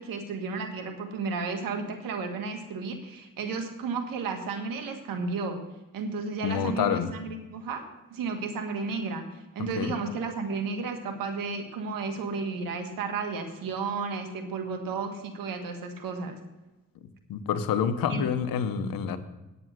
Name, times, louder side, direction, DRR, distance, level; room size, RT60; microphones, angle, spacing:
voice 1, 0.0-5.6 5.9-7.8 8.1-16.4 18.1-18.2, right 4 dB, 85° right, 6 dB, 1.6 m, -33 dB
voice 2, 6.4-7.1 9.8-10.0 17.3-19.2, left 7 dB, 85° left, 11 dB, 0.9 m, -27 dB
9.2 x 9.0 x 6.4 m, 1.1 s
supercardioid pair, 55°, 33 cm